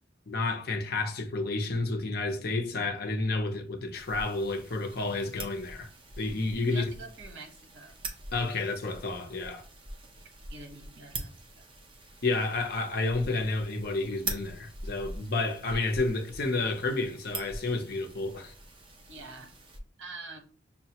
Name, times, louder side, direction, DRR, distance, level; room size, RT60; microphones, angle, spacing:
voice 1, 0.3-5.9 6.2-6.9 8.3-9.6 12.2-18.5, left 3 dB, 55° left, 0.6 m, -30 dB
sound 1, 3.9-19.8, right 2 dB, 25° right, 0.6 m, -44 dB
voice 2, 6.7-8.0 10.5-11.7 19.1-19.5 20.0-20.4, right 3 dB, 85° right, 0.9 m, -46 dB
5.6 x 2.2 x 2.8 m
head